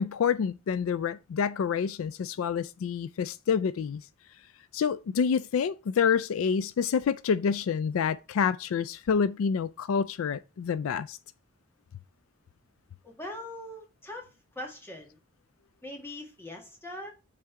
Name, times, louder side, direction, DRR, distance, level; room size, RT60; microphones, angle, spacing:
voice 1, 0.0-4.0 4.7-11.2, left 6 dB, 75° left, 0.3 m, -28 dB
voice 2, 13.0-14.3 14.6-15.2 15.8-17.1, left 1 dB, 10° left, 1.8 m, -41 dB
6.4 x 3.7 x 5.7 m
head